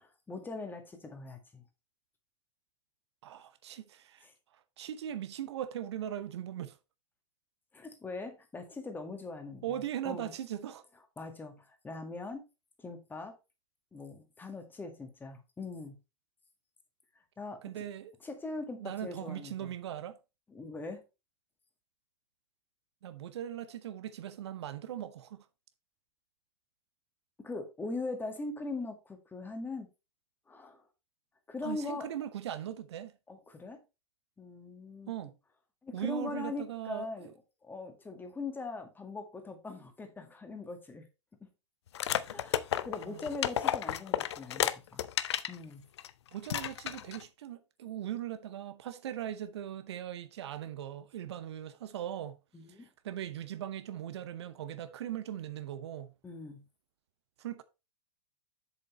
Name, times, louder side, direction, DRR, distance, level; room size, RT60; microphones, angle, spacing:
voice 1, 0.0-1.6 4.2-4.3 7.7-10.3 11.2-12.5 12.8-13.4 13.9-16.0 17.4-17.6 18.2-19.7 20.5-21.0 27.4-29.9 30.5-30.8 31.5-32.1 33.3-33.8 34.4-35.1 35.8-37.3 37.6-41.1 42.3-45.0 45.5-45.9 52.5-52.9 56.2-56.7, left 3 dB, 10° left, 1.8 m, -41 dB
voice 2, 3.2-4.3 4.5-6.8 9.6-10.8 17.6-18.1 18.8-20.2 23.0-25.5 31.6-33.1 35.1-35.3 35.9-37.3 43.0-43.2 46.3-52.4 52.7-56.1 57.4-57.6, right 11 dB, 60° right, 0.8 m, -39 dB
sound 1, 41.9-45.6 46.0-46.1 46.5-47.2, left 10 dB, 60° left, 0.6 m, -32 dB
7.8 x 7.2 x 3.1 m
figure-of-eight pair, 95°, 16 cm